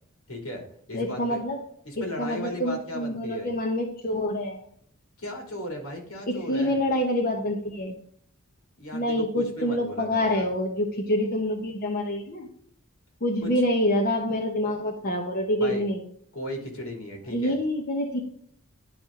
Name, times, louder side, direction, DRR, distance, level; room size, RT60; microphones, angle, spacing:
voice 1, 0.3-0.6 0.9-1.4 1.8-3.5 5.2-6.8 8.8-10.5 13.4-13.5 15.6-15.8 16.3-17.6, left 1 dB, 80° left, 2 dB, 3.0 m, -36 dB
voice 2, 0.9-1.6 2.0-4.6 6.3-7.9 8.9-12.5 13.2-16.0 17.3-18.2, left 1 dB, 45° left, 1 dB, 1.1 m, -26 dB
11.0 x 4.8 x 3.7 m, 0.62 s
head